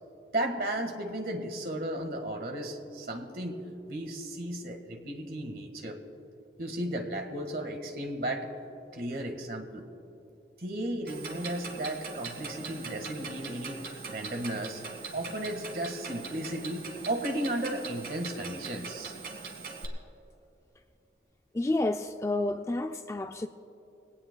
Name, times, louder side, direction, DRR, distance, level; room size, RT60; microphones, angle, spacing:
voice 1, 0.3-6.0 6.6-8.5 8.9-9.8 10.6-13.8 14.1-14.8 15.1-19.1, right 1 dB, 55° right, 4 dB, 1.6 m, -34 dB
Clock, 11.1-19.9, right 4 dB, 70° right, 2.0 m, -41 dB
voice 2, 21.5-23.5, left 2 dB, 15° left, 7 dB, 0.3 m, -30 dB
22.0 x 17.5 x 2.2 m, 2.9 s
head